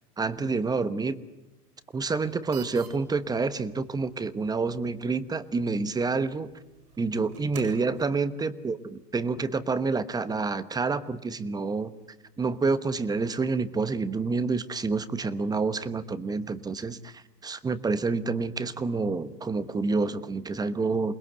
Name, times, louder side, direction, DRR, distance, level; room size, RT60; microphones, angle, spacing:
voice 1, 0.2-1.2 1.9-6.5 7.0-11.9 12.4-21.1, right 4 dB, 10° right, 13 dB, 1.1 m, -28 dB
sound 1, 2.2-8.1, right 8 dB, 65° right, 7.5 m, -52 dB
28.0 x 21.0 x 8.0 m, 0.99 s
hypercardioid pair, 120°, 48 cm